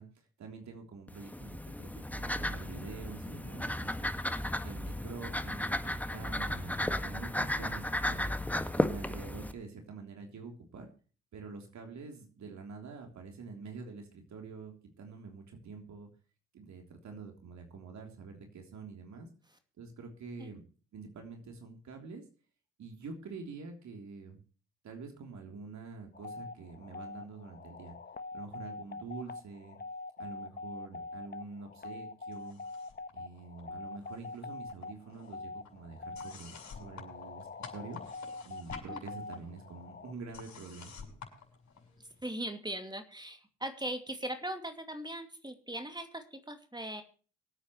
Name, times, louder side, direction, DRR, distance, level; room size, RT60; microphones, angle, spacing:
voice 1, 0.0-4.3 4.6-8.3 8.7-10.9 11.3-16.1 16.5-19.3 19.8-20.6 20.9-22.2 22.8-24.4 24.8-28.0 28.3-29.8 30.2-32.6 33.1-38.0 38.4-41.0, right 4 dB, 60° right, 3 dB, 3.4 m, -46 dB
sound 1, 1.1-9.5, left 1 dB, 5° left, 1.8 m, -34 dB
sound 2, 26.1-40.1, left 3 dB, 30° left, 1.3 m, -44 dB
sound 3, 32.3-33.1 33.4-34.4 34.7-42.2, left 6 dB, 55° left, 6.4 m, -51 dB
voice 2, 42.2-47.0, right 1 dB, 15° right, 7 dB, 2.5 m, -39 dB
24.5 x 8.8 x 3.1 m, 0.39 s
hypercardioid pair, 55°, 32 cm